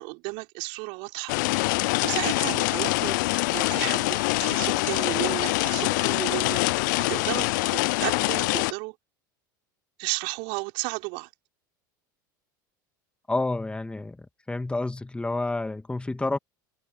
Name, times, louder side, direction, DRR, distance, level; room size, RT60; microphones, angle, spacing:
voice 1, 0.0-1.4 1.8-9.0 10.0-11.3, right 31 dB, 60° right, 5.3 m, -33 dB
sound 1, 1.3-8.7, left 24 dB, 65° left, 0.5 m, -25 dB
voice 2, 13.3-14.2 14.5-16.4, left 2 dB, 10° left, 2.3 m, -29 dB
hypercardioid pair, 80°, 11 cm